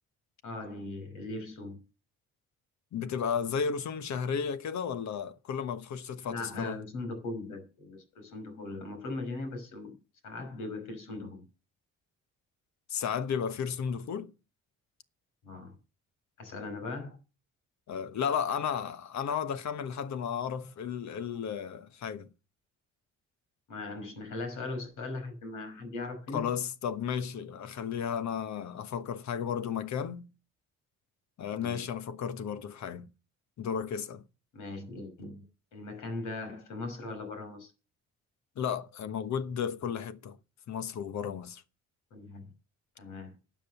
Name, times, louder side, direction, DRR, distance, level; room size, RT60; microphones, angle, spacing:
voice 1, 0.4-1.8 6.3-9.9 10.2-11.4 15.4-15.8 16.4-17.2 23.7-26.5 31.6-31.8 34.5-35.4 35.7-37.7 42.1-42.5 43.0-43.4, left 2 dB, 85° left, 5.5 m, -39 dB
voice 2, 2.9-6.8 12.9-14.3 17.9-22.3 26.3-30.3 31.4-33.1 33.6-34.2 38.6-40.4 40.7-41.6, left 7 dB, 65° left, 1.2 m, -33 dB
12.5 x 7.7 x 6.9 m
cardioid pair, 90°, 30 cm